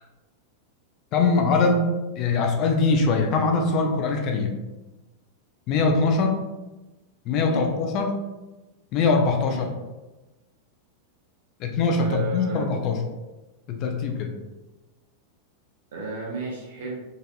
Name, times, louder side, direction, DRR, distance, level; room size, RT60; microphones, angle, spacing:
voice 1, 1.1-4.5 5.7-6.4 7.3-8.2 8.9-9.7 11.6-13.0 13.7-14.3, left 4 dB, 40° left, 3 dB, 0.5 m, -22 dB
voice 2, 12.0-12.7 15.9-17.0, right 3 dB, 60° right, -2 dB, 0.5 m, -33 dB
3.9 x 2.5 x 2.4 m, 1.1 s
figure-of-eight pair, 90°, 0 cm